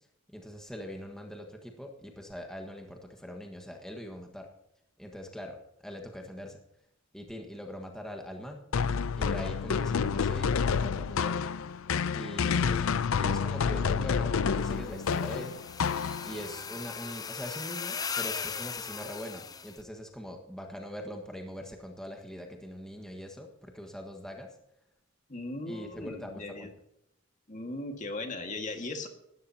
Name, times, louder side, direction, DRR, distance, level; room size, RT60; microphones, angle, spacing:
voice 1, 0.3-4.5 5.0-6.6 7.1-8.7 9.2-11.5 12.1-15.6 16.2-24.5 25.7-26.7, equal, 5° left, 2 dB, 1.4 m, -42 dB
sound 1, 8.7-16.5, left 6 dB, 80° left, 0.5 m, -29 dB
sound 2, 14.8-19.8, left 6 dB, 20° left, 0.4 m, -38 dB
voice 2, 25.3-26.7 27.5-29.1, left 2 dB, 35° left, 5 dB, 1.8 m, -38 dB
18.5 x 13.5 x 2.8 m, 0.79 s
head